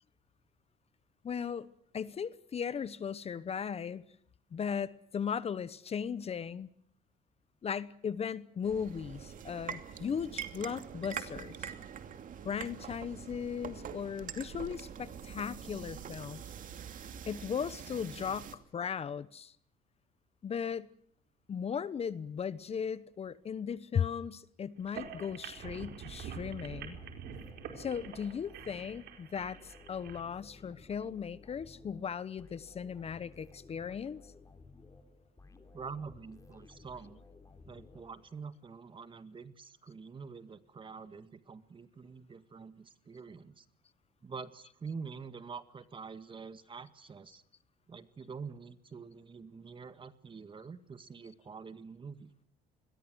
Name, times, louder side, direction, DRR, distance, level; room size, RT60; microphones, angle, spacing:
voice 1, 1.2-1.7 1.9-4.0 4.5-6.7 7.6-11.7 12.4-16.4 17.3-19.5 20.4-20.9 21.5-27.0 27.8-34.2, left 7 dB, 35° left, 1.0 m, -37 dB
sound 1, 8.6-18.6, right 8 dB, 50° right, 2.7 m, -44 dB
sound 2, 24.8-30.2, right 8 dB, 80° right, 4.6 m, -46 dB
sound 3, 26.4-38.6, left 3 dB, 20° left, 3.6 m, -56 dB
voice 2, 35.7-37.2 37.7-43.7 44.2-47.4 47.9-52.3, right 5 dB, 30° right, 1.7 m, -46 dB
28.0 x 21.5 x 6.3 m
cardioid pair, 110°, 17 cm